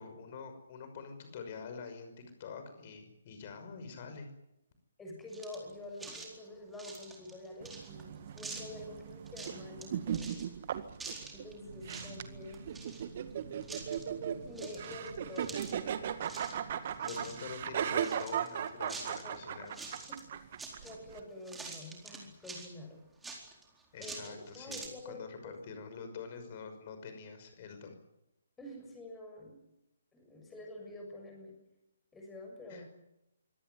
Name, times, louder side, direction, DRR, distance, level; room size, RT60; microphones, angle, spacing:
voice 1, 0.0-2.1 2.4-4.3 17.0-19.8 23.9-27.9 32.7-32.8, left 5 dB, 35° left, 8 dB, 5.9 m, -46 dB
voice 2, 5.0-10.4 11.3-12.7 14.4-15.7 16.1-16.2 19.2-19.7 20.1-20.6 20.8-23.0 24.0-25.6 28.6-29.6 30.1-31.5 32.1-32.9, left 1 dB, 10° left, 1 dB, 6.9 m, -47 dB
sound 1, 5.3-5.7 6.0-6.3 6.7-8.0 8.4-8.8 9.3-9.8 10.1-10.5 11.0-11.5 11.8-12.2 12.4-13.3 13.6-14.0 14.6-15.9 16.2-16.6 16.9-17.4 18.0-19.4 19.7-20.2 20.6-21.2 21.5-22.7 23.2-24.9, right 3 dB, 5° right, 4.3 m, -46 dB
sound 2, 7.6-21.2, right 9 dB, 40° right, 1.9 m, -38 dB
sound 3, 11.6-17.4, right 2 dB, 70° right, 4.9 m, -52 dB
24.5 x 18.0 x 9.7 m, 0.87 s
figure-of-eight pair, 135°, 0 cm